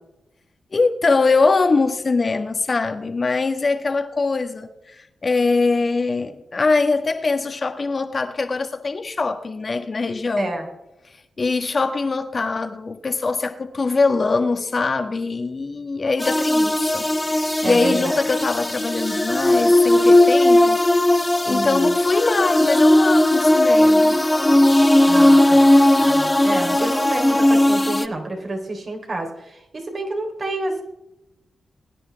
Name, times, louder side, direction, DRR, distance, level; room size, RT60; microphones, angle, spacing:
voice 1, 0.7-10.5 11.4-17.1 17.3-20.8 21.4-24.1, left 3 dB, 50° left, 1.4 m, -22 dB
voice 2, 10.4-10.7 17.6-18.2 21.5-22.0 25.1-25.6 26.0-30.8, right 2 dB, 55° right, 3.4 m, -29 dB
sound 1, 16.2-28.0, left 1 dB, 20° left, 0.7 m, -17 dB
22.0 x 10.0 x 3.4 m
supercardioid pair, 45°, 0 cm